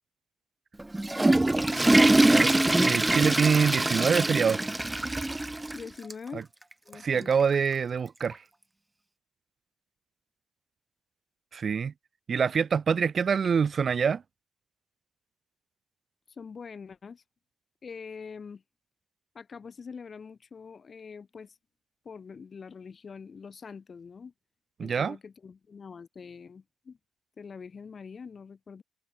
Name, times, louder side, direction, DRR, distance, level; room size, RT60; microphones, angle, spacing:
Water / Toilet flush, 0.8-5.8 6.1-6.2 6.9-7.0 8.3-8.4, right 2 dB, 10° right, 0.7 m, -23 dB
voice 1, 2.8-4.6 6.3-6.4 7.0-8.4 11.5-11.9 12.3-14.2 24.8-25.2, right 6 dB, 45° right, 1.3 m, -25 dB
voice 2, 5.7-6.5 6.8-7.3 16.3-17.2 17.8-18.6 19.3-21.6 22.0-24.3 24.8-27.0 27.4-28.8, left 5 dB, 40° left, 4.2 m, -44 dB
cardioid pair, 115°, 0 cm